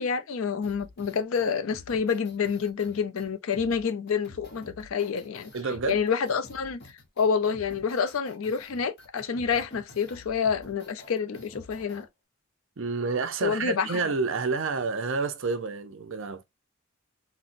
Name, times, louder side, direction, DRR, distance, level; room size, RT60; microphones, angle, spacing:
voice 1, 0.0-5.5 5.9-6.8 7.2-12.1 13.4-13.9, left 6 dB, 75° left, 0.5 m, -28 dB
sound 1, 0.6-12.0, left 2 dB, 50° left, 0.8 m, -49 dB
voice 2, 5.5-6.0 12.8-16.4, right 4 dB, 65° right, 0.6 m, -29 dB
4.1 x 2.1 x 2.5 m
head